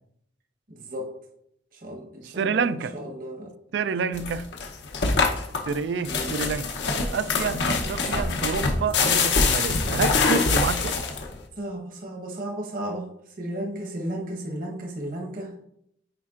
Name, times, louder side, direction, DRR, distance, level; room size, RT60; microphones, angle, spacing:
voice 1, 0.7-1.1 1.7-3.8 6.0-6.4 8.1-8.3 8.6-8.8 9.3-9.4 11.6-15.5, right 1 dB, 50° right, 1.1 m, -35 dB
voice 2, 2.4-2.9 3.7-4.5 5.7-6.7 7.1-11.0, right 5 dB, 70° right, 0.3 m, -28 dB
sound 1, 4.1-11.4, left 4 dB, 75° left, 0.8 m, -24 dB
8.4 x 4.6 x 2.5 m
head